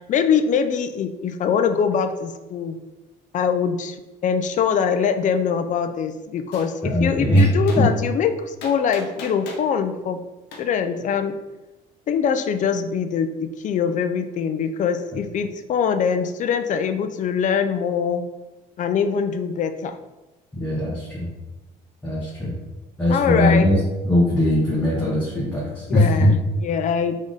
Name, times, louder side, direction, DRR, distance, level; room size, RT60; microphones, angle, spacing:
voice 1, 0.1-2.8 3.3-4.0 4.2-10.2 10.6-11.4 12.1-18.2 18.8-20.0 23.1-23.7 25.9-27.2, left 7 dB, 50° left, 8 dB, 0.4 m, -23 dB
Gunshot gunfire, 6.5-6.7 7.7-7.8 8.6-9.7 10.5-10.6, left 3 dB, 90° left, 0.9 m, -36 dB
voice 2, 6.9-7.5 7.8-7.9 20.5-21.3 22.0-22.6 23.0-23.8 24.0-26.3, left 1 dB, 10° left, -8 dB, 1.3 m, -20 dB
3.6 x 3.5 x 4.0 m, 1.1 s
cardioid pair, 110°, 17 cm